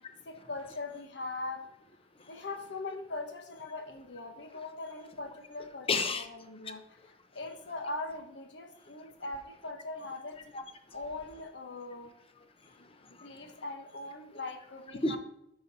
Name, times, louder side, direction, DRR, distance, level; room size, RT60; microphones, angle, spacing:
voice 1, 0.2-1.6 2.2-6.8 7.3-10.4 10.9-12.1 13.2-15.2, left 2 dB, 75° left, 5 dB, 1.3 m, -41 dB
voice 2, 5.9-6.3 6.6-6.7 7.0-7.1 10.5-11.0 12.4-13.6 15.0-15.2, left 3 dB, 30° left, 8 dB, 0.8 m, -35 dB
8.9 x 5.6 x 4.1 m, 0.77 s
head